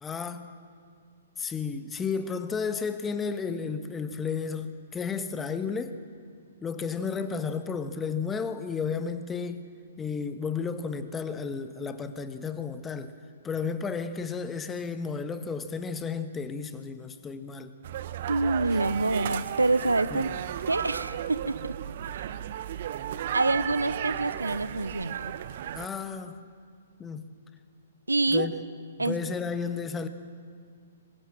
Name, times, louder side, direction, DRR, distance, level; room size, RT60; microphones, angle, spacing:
voice 1, 0.0-0.5 1.4-6.0 6.6-9.6 10.0-13.1 13.4-17.7 20.1-20.3 25.7-26.4 27.0-27.3 28.3-28.6 29.0-30.1, left 5 dB, 15° left, 10 dB, 1.3 m, -33 dB
sound 1, 17.8-25.9, right 10 dB, 50° right, 0.9 m, -34 dB
voice 2, 18.3-20.4 20.7-21.8 22.0-22.1 23.3-25.4 28.1-28.5 29.0-29.2, right 2 dB, 85° right, 16 dB, 0.8 m, -26 dB
23.5 x 21.0 x 7.7 m, 2.1 s
figure-of-eight pair, 120°, 0 cm